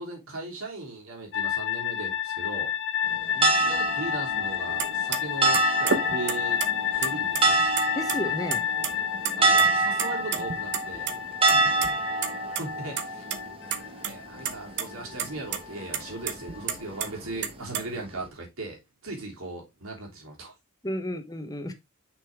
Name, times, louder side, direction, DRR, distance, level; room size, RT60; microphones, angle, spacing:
voice 1, 0.0-2.7 3.3-6.6 7.0-7.6 9.4-11.1 12.5-13.3 14.0-18.8 19.0-20.5, right 2 dB, 85° right, 3.2 m, -38 dB
sound 1, 1.3-17.1, left 10 dB, 60° left, 0.7 m, -31 dB
sound 2, 3.1-18.3, right 3 dB, 25° right, 1.2 m, -28 dB
sound 3, 4.8-4.9 5.1-5.2 5.5-6.7 7.0-7.8 8.1-8.2 8.5-8.9 9.2-9.7 10.0-11.1 11.5-11.9 12.2-12.3 12.6-12.7 13.0-13.4 13.7-14.1 14.5-14.8 15.2-15.3 15.5-15.6 15.9-17.1 17.4-17.8, right 7 dB, 55° right, 0.9 m, -29 dB
voice 2, 7.9-8.7 11.5-12.0 20.8-21.7, left 1 dB, 20° left, 1.0 m, -33 dB
6.4 x 5.3 x 3.5 m
head